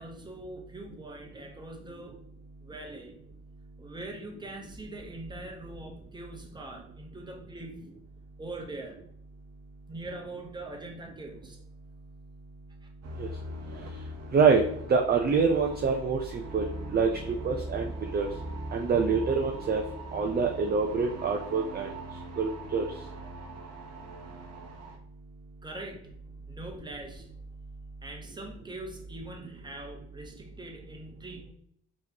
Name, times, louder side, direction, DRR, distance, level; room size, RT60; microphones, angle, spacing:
voice 1, 0.0-2.2 2.6-3.1 3.8-8.0 8.4-9.0 9.9-11.6 25.6-26.1 26.4-27.3 28.0-31.5, right 2 dB, 15° right, 2 dB, 0.9 m, -42 dB
sound 1, 13.0-25.0, right 1 dB, 55° right, 0.8 m, -41 dB
voice 2, 14.3-14.6 14.9-17.1 17.4-18.3 18.7-19.8 20.1-21.9 22.4-22.8, right 5 dB, 35° right, 2 dB, 0.5 m, -25 dB
4.8 x 3.1 x 2.8 m, 0.66 s
cardioid pair, 90°, 30 cm